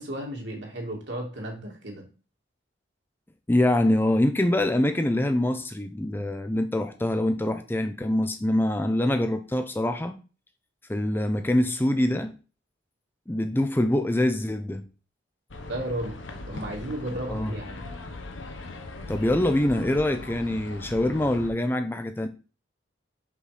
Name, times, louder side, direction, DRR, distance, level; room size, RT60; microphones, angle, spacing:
voice 1, 0.0-2.0 15.7-16.2 16.5-17.8, right 1 dB, 65° right, 2.5 m, -34 dB
voice 2, 3.5-10.2 10.9-12.3 13.3-14.8 17.3-17.6 19.1-22.3, left 1 dB, 10° left, 0.4 m, -24 dB
sound 1, 15.5-21.5, left 2 dB, 80° left, 1.0 m, -39 dB
5.6 x 5.4 x 4.9 m
head